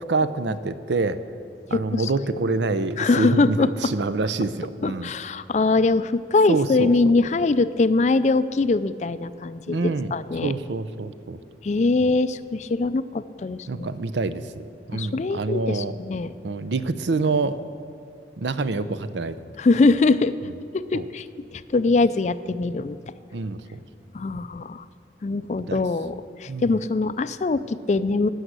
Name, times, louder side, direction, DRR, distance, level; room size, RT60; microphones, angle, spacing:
voice 1, 0.1-1.2 1.7-5.1 6.5-6.9 9.7-10.1 10.4-11.4 13.7-16.0 16.4-17.6 18.4-19.4 20.9-21.1 23.3-23.8 25.7-25.8 26.5-26.7, right 3 dB, 80° right, 13 dB, 0.6 m, -26 dB
voice 2, 1.7-2.1 2.3-2.4 3.0-3.7 4.8-10.5 11.6-13.9 14.9-16.3 19.6-20.3 20.7-21.3 21.5-23.0 24.1-24.8 25.2-28.3, left 3 dB, 40° left, 14 dB, 0.3 m, -22 dB
16.0 x 6.4 x 8.1 m, 2.5 s
head